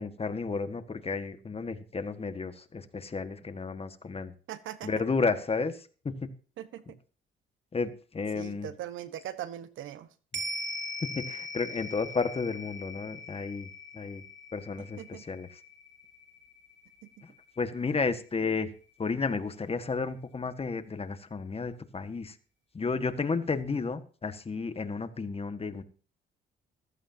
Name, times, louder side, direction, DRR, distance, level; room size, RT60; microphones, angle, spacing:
voice 1, 0.0-4.3 4.8-6.3 7.7-8.7 11.0-13.7 13.9-14.2 14.5-15.5 17.6-18.7 19.0-22.4 22.7-25.8, left 4 dB, 30° left, 10 dB, 1.6 m, -32 dB
voice 2, 4.5-4.9 6.6-7.0 8.3-10.1 15.0-15.2 17.0-17.1, right 11 dB, 80° right, 13 dB, 1.3 m, -40 dB
sound 1, 10.3-18.9 19.2-19.3, left 1 dB, 65° right, 3.1 m, -41 dB
15.0 x 14.5 x 2.8 m, 0.39 s
cardioid pair, 90°, 20 cm